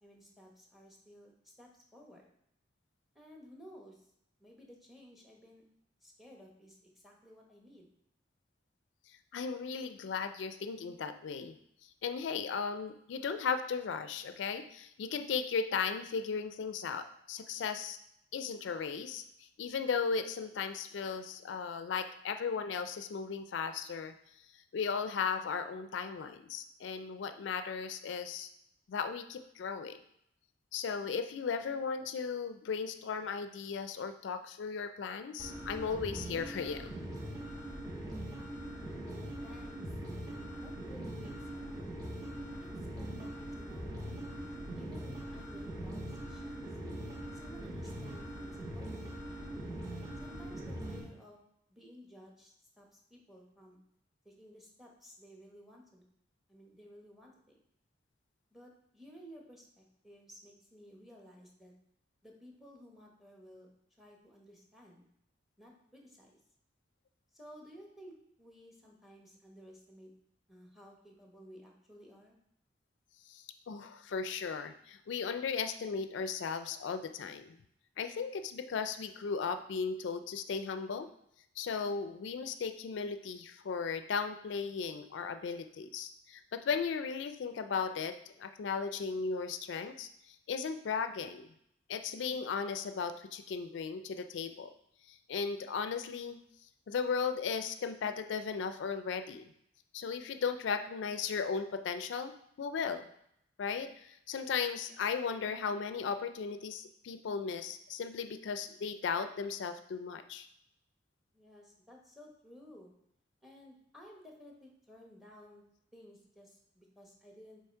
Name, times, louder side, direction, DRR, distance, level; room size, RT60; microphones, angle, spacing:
voice 1, 0.0-2.2 3.1-4.1 4.4-5.6 6.0-7.9 39.0-39.8 40.2-41.8 42.6-44.1 44.7-46.7 47.3-49.2 50.2-51.4 51.7-53.8 54.2-56.0 56.5-57.6 58.5-61.7 62.2-63.7 64.0-65.1 65.6-66.4 67.3-70.1 70.5-72.4 111.3-112.9 113.4-115.6 115.9-117.6, equal, ahead, 0 dB, 0.9 m, -55 dB
voice 2, 9.3-11.5 12.0-18.0 18.3-24.1 24.7-28.5 28.9-30.0 30.7-36.9 73.3-77.6 78.0-81.1 81.6-91.5 91.9-94.7 95.1-96.4 96.9-99.5 99.9-102.3 102.6-103.1 103.6-110.5, left 5 dB, 75° left, 9 dB, 0.4 m, -36 dB
sound 1, 35.4-51.0, right 1 dB, 20° right, 1.2 m, -42 dB
7.0 x 3.2 x 4.4 m, 0.74 s
head